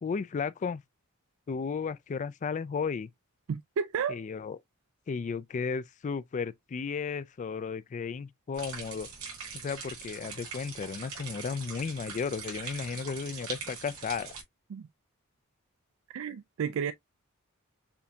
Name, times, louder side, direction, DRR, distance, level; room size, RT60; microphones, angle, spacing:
voice 1, 0.0-0.8 1.5-3.1 4.1-4.6 5.1-9.1 9.6-14.3, left 5 dB, 35° left, 0.3 m, -34 dB
voice 2, 3.5-4.2 14.7-14.9 16.1-16.9, right 7 dB, 65° right, 0.3 m, -32 dB
sound 1, 8.5-14.4, right 5 dB, 90° right, 2.8 m, -42 dB
7.0 x 2.7 x 2.2 m
head